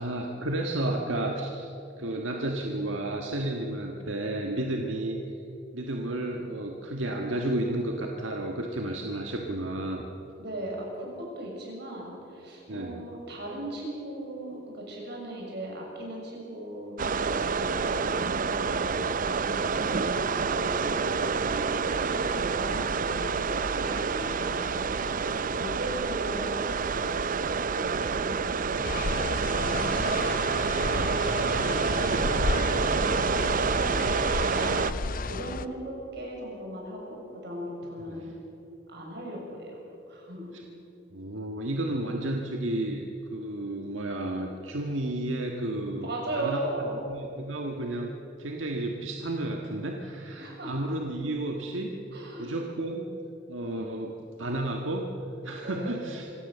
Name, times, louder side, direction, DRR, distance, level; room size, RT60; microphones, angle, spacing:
voice 1, 0.0-1.7 2.0-5.2 5.7-10.0 12.7-13.0 21.6-21.8 28.0-28.3 30.8-31.1 34.6-35.0 38.1-38.3 40.5-40.6 41.1-46.6 47.0-48.1 48.4-51.9 52.4-53.0 53.5-55.1 55.4-56.3, right 1 dB, 90° right, 1 dB, 1.6 m, -32 dB
voice 2, 10.4-17.0 17.3-20.9 21.3-24.9 25.6-26.6 26.8-27.1 27.6-30.3 31.1-33.8 34.4-38.3 38.9-39.8 40.1-40.5 45.9-47.0 50.4-50.8 52.1-52.6 55.6-56.0, right 1 dB, 60° right, -2 dB, 6.8 m, -38 dB
sound 1, 17.0-34.9, right 5 dB, 45° right, 0.6 m, -28 dB
sound 2, 28.8-35.7, left 3 dB, 45° left, 0.6 m, -32 dB
25.5 x 16.5 x 6.9 m, 2.8 s
head